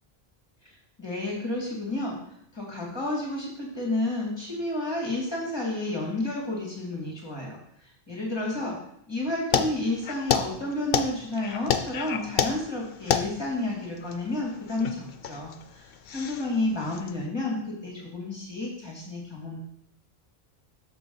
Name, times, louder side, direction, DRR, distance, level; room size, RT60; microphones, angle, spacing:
voice 1, 0.6-2.2 2.5-8.8 9.1-19.6, left 2 dB, 25° left, -3 dB, 2.2 m, -31 dB
sound 1, 9.5-17.2, left 7 dB, 70° left, 0.8 m, -30 dB
6.8 x 6.5 x 3.9 m, 0.71 s
omnidirectional pair, 1.0 m